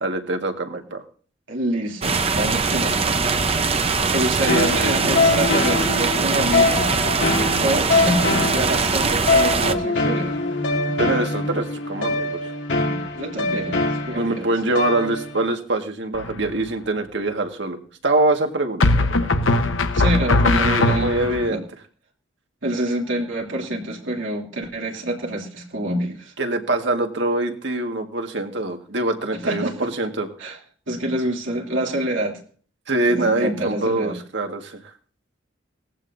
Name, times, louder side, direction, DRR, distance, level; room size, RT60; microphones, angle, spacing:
voice 1, 0.0-1.0 11.0-12.4 14.2-17.8 18.0-19.1 20.2-21.6 26.4-30.3 32.9-34.8, right 2 dB, 65° right, 5 dB, 1.7 m, -24 dB
voice 2, 1.5-3.2 4.1-7.3 7.6-10.4 12.9-14.5 19.9-21.6 22.6-26.3 29.3-29.9 30.4-30.6 30.9-32.4 33.1-34.2, right 1 dB, 85° right, -2 dB, 2.9 m, -27 dB
sound 1, 2.0-9.7, right 4 dB, 30° right, 0.8 m, -22 dB
sound 2, 4.5-15.4, left 3 dB, 70° left, 2.0 m, -23 dB
sound 3, 16.1-16.7 18.8-21.5, left 2 dB, 90° left, 1.1 m, -20 dB
19.0 x 15.0 x 2.7 m, 0.43 s
head